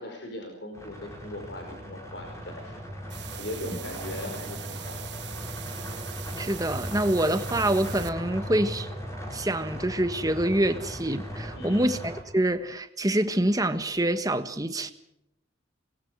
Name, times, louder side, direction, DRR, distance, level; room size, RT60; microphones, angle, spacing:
voice 1, 0.0-3.0 3.4-5.0 11.5-12.0, left 1 dB, 60° left, 5.0 m, -39 dB
sound 1, 0.7-12.2, equal, 15° left, 5.4 m, -38 dB
sound 2, 3.1-8.1, right 13 dB, 60° right, 1.4 m, -42 dB
voice 2, 6.4-8.9 9.3-14.9, right 1 dB, 20° right, 1.4 m, -26 dB
28.0 x 21.0 x 4.7 m
head